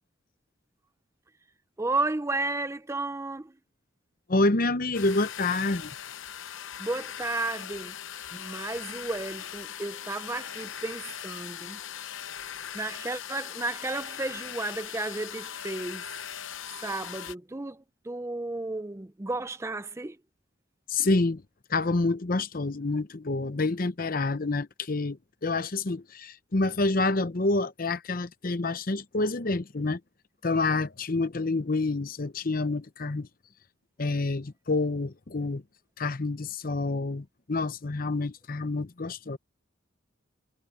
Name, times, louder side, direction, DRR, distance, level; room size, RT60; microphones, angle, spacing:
voice 1, 1.8-3.5 6.8-7.9 8.3-11.8 12.7-16.1 16.8-20.2, right 2 dB, 15° right, 0.5 m, -33 dB
voice 2, 4.3-5.9 20.9-21.4 21.7-30.0 30.4-33.3 34.0-35.6 36.0-39.4, left 3 dB, 45° left, 0.8 m, -28 dB
sound 1, 4.9-17.3, left 9 dB, 85° left, 0.7 m, -40 dB
head